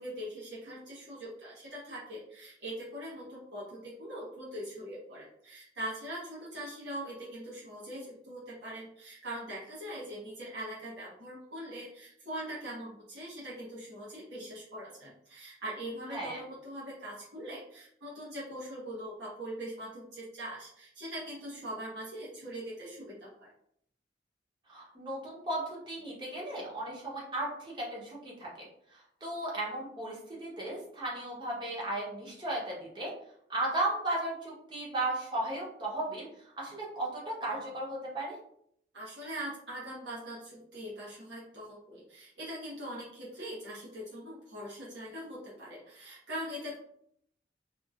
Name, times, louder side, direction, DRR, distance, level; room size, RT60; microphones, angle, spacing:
voice 1, 0.0-23.5 38.9-46.8, right 1 dB, 80° right, -8 dB, 1.0 m, -42 dB
voice 2, 24.7-28.7 28.9-33.1 33.5-36.3 36.6-38.4, right 1 dB, 25° right, -4 dB, 0.8 m, -35 dB
2.8 x 2.5 x 2.3 m, 0.69 s
head